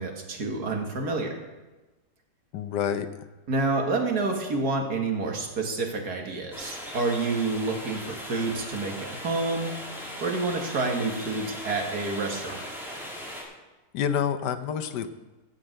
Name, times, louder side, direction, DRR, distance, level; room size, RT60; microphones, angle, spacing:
voice 1, 0.0-1.4 3.5-9.9 10.2-12.6, right 3 dB, 65° right, 2 dB, 2.2 m, -28 dB
voice 2, 2.5-3.1 13.9-15.1, left 8 dB, 75° left, 10 dB, 1.3 m, -28 dB
sound 1, 6.5-13.4, equal, ahead, 2.5 m, -39 dB
15.0 x 5.3 x 7.8 m, 1.2 s
omnidirectional pair, 1.8 m